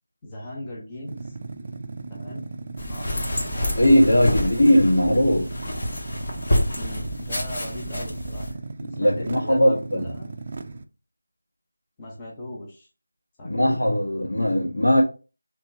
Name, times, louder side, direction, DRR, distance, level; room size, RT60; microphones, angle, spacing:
voice 1, 0.2-1.3 2.1-2.5 2.9-4.6 6.7-8.6 9.0-10.3 12.0-12.9 13.4-13.8, left 1 dB, 15° left, 0.7 m, -39 dB
sound 1, 1.1-10.8, right 3 dB, 35° right, 0.3 m, -37 dB
sound 2, 2.8-8.5, left 1 dB, 40° left, 1.0 m, -28 dB
voice 2, 3.8-5.5 8.8-10.0 13.4-15.0, equal, 85° left, 1.8 m, -19 dB
3.3 x 2.9 x 4.2 m
figure-of-eight pair, 170°, 0 cm